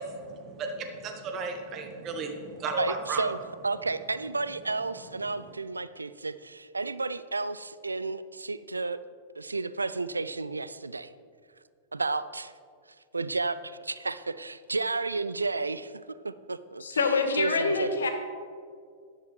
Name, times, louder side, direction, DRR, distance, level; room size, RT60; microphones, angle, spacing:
voice 1, 0.0-3.2 5.2-5.5, right 3 dB, 30° right, 5 dB, 1.2 m, -35 dB
voice 2, 2.8-3.4 3.6-9.0 9.4-11.1 11.9-12.5 13.1-15.9 16.2-17.0 17.3-18.1, right 3 dB, 80° right, 15 dB, 0.3 m, -32 dB
voice 3, 16.8-18.1, left 4 dB, 70° left, 6 dB, 1.2 m, -26 dB
12.0 x 10.5 x 3.2 m, 2.2 s
figure-of-eight pair, 100°, 0 cm